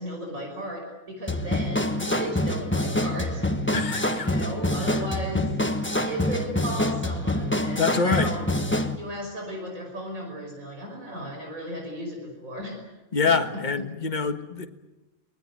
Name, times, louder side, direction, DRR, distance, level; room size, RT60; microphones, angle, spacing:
voice 1, 0.0-3.7 4.2-8.5 9.0-12.8 13.2-13.3, equal, 75° right, 1 dB, 6.0 m, -35 dB
sound 1, 1.3-9.0, left 1 dB, 10° left, 1.2 m, -26 dB
voice 2, 3.7-4.3 4.8-4.9 7.8-8.3 13.1-14.7, left 5 dB, 35° left, 7 dB, 1.6 m, -26 dB
23.5 x 20.0 x 9.7 m, 1.1 s
omnidirectional pair, 1.4 m